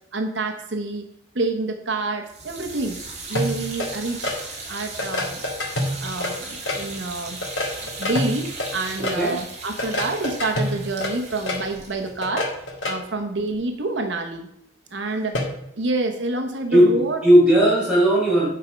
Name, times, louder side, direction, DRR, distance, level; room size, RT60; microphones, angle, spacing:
voice 1, 0.1-1.1 1.3-3.0 3.3-5.4 6.0-7.4 8.0-12.5 12.8-14.5 14.9-15.4 15.8-17.2, right 2 dB, 75° right, 4 dB, 1.1 m, -27 dB
sound 1, 2.3-13.3, right 3 dB, 35° right, 2.1 m, -37 dB
sound 2, 3.4-4.4 5.0-6.8 7.3-9.2 9.8-11.6 12.1-12.9 15.4-15.5, left 1 dB, 90° left, 2.2 m, -27 dB
voice 2, 9.0-9.4 16.7-18.5, equal, 5° right, -7 dB, 4.3 m, -17 dB
9.5 x 5.8 x 5.1 m, 0.78 s
head